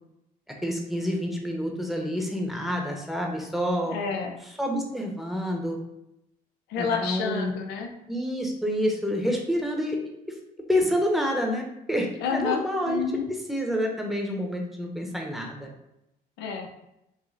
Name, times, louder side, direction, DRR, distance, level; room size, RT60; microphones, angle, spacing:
voice 1, 0.6-4.0 4.6-5.8 6.8-7.5 8.1-10.0 10.7-13.0 13.5-15.7, equal, ahead, 0 dB, 0.8 m, -28 dB
voice 2, 3.8-4.4 6.7-7.9 12.2-13.2 16.4-16.7, left 6 dB, 90° left, 3 dB, 0.7 m, -29 dB
5.1 x 2.1 x 3.9 m, 0.86 s
cardioid pair, 110°, 17 cm